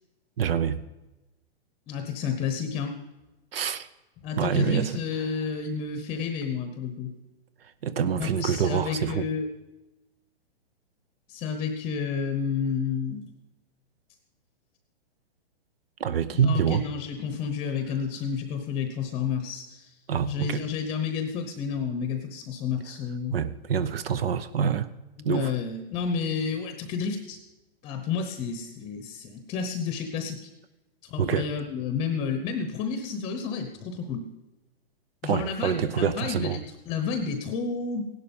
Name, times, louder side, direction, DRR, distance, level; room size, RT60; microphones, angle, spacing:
voice 1, 0.4-0.8 3.5-3.9 4.4-4.9 7.8-9.3 16.0-16.9 20.1-20.6 23.3-24.9 25.2-25.5 31.2-31.5 35.2-36.6, right 7 dB, 65° right, 0.9 m, -26 dB
voice 2, 1.9-2.9 4.2-7.1 8.2-9.5 11.3-13.3 16.3-19.9 20.3-23.3 25.2-27.4 27.8-30.5 31.0-34.3 35.2-38.0, left 6 dB, 15° left, 0.9 m, -31 dB
16.5 x 11.5 x 5.4 m
hypercardioid pair, 155°, 32 cm